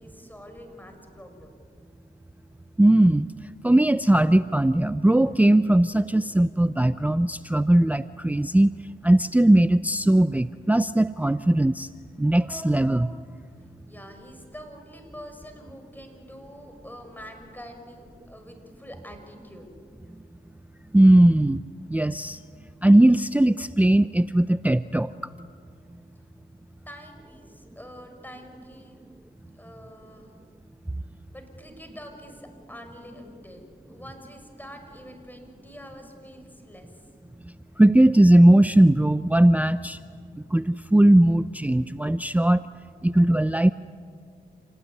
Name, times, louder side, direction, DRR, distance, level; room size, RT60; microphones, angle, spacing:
voice 1, 0.0-1.5 13.9-19.7 26.8-29.0 29.5-30.4 31.3-33.6 33.9-37.0, equal, 10° left, 5 dB, 6.4 m, -45 dB
voice 2, 2.8-8.7 9.0-11.9 12.2-13.2 20.9-21.6 21.9-22.4 22.8-25.3 37.4-40.0 40.5-42.6 43.0-43.7, right 1 dB, 5° right, 14 dB, 0.6 m, -19 dB
28.0 x 18.0 x 9.7 m, 2.2 s
supercardioid pair, 50°, 20 cm